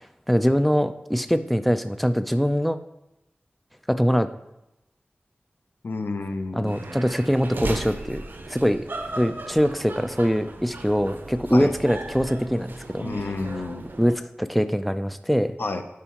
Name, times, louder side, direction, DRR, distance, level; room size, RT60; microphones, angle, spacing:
voice 1, 0.3-2.8 3.9-4.3 6.5-8.2 8.5-8.8 9.2-13.1 14.0-15.5, equal, ahead, 10 dB, 0.5 m, -23 dB
voice 2, 5.8-7.0 11.5-11.7 13.0-13.8 15.6-15.8, left 3 dB, 75° left, 7 dB, 0.7 m, -30 dB
sound 1, 6.7-14.1, right 2 dB, 70° right, 0.7 m, -36 dB
11.5 x 4.7 x 3.0 m, 0.90 s
wide cardioid pair, 50°, 4 cm